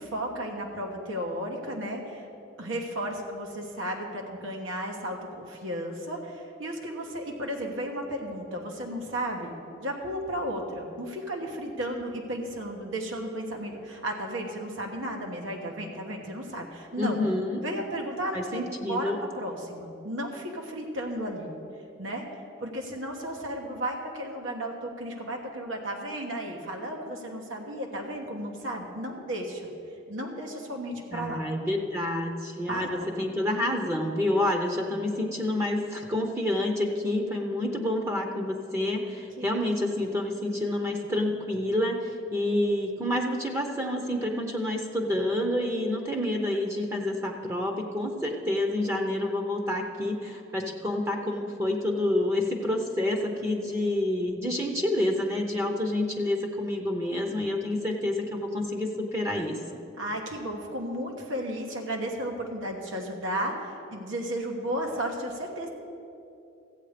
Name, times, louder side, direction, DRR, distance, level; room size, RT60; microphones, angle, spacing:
voice 1, 0.0-2.3 2.6-9.5 9.8-17.2 17.6-21.5 22.0-22.2 22.6-29.7 30.1-31.4 32.7-32.9 39.4-39.5 60.0-65.7, right 1 dB, 85° right, 1 dB, 1.3 m, -34 dB
voice 2, 17.0-17.6 18.3-19.2 31.1-59.8, left 1 dB, 15° right, 2 dB, 0.7 m, -28 dB
14.5 x 8.2 x 5.1 m, 2.7 s
head